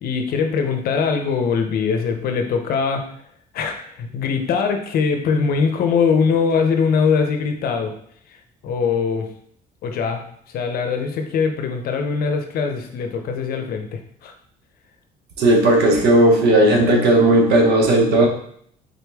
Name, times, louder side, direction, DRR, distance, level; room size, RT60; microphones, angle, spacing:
voice 1, 0.0-3.0 3.5-7.9 8.6-9.3 9.8-10.2 10.5-14.3, left 5 dB, 60° left, 5 dB, 0.7 m, -21 dB
voice 2, 15.4-18.3, right 1 dB, 80° right, 2 dB, 0.9 m, -15 dB
3.9 x 3.0 x 3.4 m, 0.65 s
cardioid pair, 110°, 17 cm